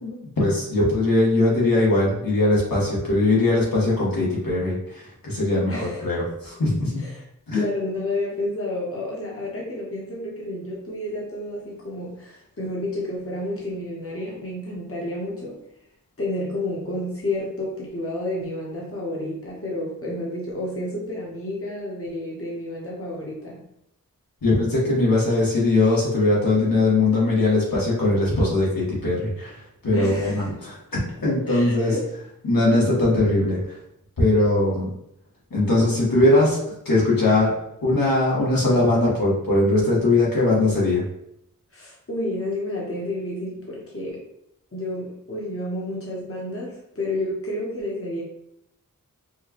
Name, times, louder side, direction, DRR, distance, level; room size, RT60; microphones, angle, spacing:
voice 1, 0.0-6.9 7.5-7.6 24.4-30.8 31.2-31.9 32.4-33.8 34.2-34.9 35.5-36.6 36.8-37.5 37.8-41.0, left 2 dB, 85° left, -6 dB, 1.5 m, -20 dB
voice 2, 5.7-6.2 7.0-7.2 7.5-15.6 16.2-23.6 29.9-30.5 31.5-32.1 41.7-44.2 44.7-48.2, left 1 dB, 40° left, -4 dB, 1.0 m, -30 dB
4.6 x 2.2 x 3.0 m, 0.78 s
wide cardioid pair, 75°, 34 cm